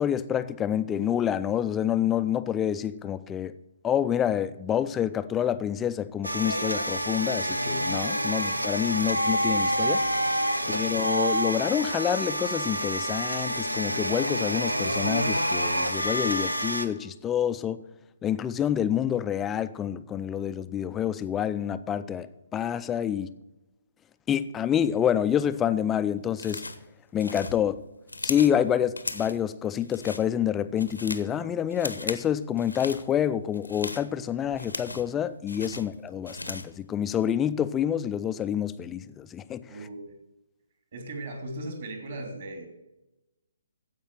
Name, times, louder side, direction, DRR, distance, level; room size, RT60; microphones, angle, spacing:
voice 1, 0.0-3.5 3.8-10.0 10.7-17.8 18.2-23.4 24.3-26.7 27.1-27.8 28.2-39.6, left 9 dB, 15° left, 0.4 m, -27 dB
sound 1, 6.2-16.9, equal, 85° right, 1.0 m, -27 dB
voice 2, 10.5-11.0 35.7-35.8 39.7-40.1 40.9-42.7, right 2 dB, 45° right, 2.8 m, -38 dB
sound 2, 26.4-26.9 27.2-28.6 29.0-29.4 29.8-30.2 30.6-31.3 31.7-32.3 32.6-33.0 33.5-35.1 35.5-36.8, left 2 dB, 80° left, 1.1 m, -37 dB
15.0 x 5.2 x 7.5 m
figure-of-eight pair, 135°, 0 cm